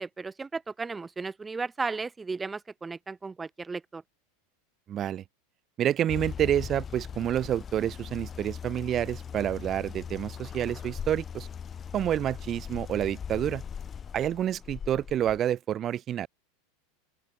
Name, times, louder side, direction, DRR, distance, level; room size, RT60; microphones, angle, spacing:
voice 1, 0.0-4.0, right 4 dB, 15° right, 0.7 m, -35 dB
voice 2, 4.9-5.2 5.8-11.5 11.9-13.6 14.1-16.3, right 10 dB, 30° right, 1.4 m, -28 dB
sound 1, 6.1-15.4, left 7 dB, 25° left, 5.6 m, -40 dB
open air
supercardioid pair, 130°, 0 cm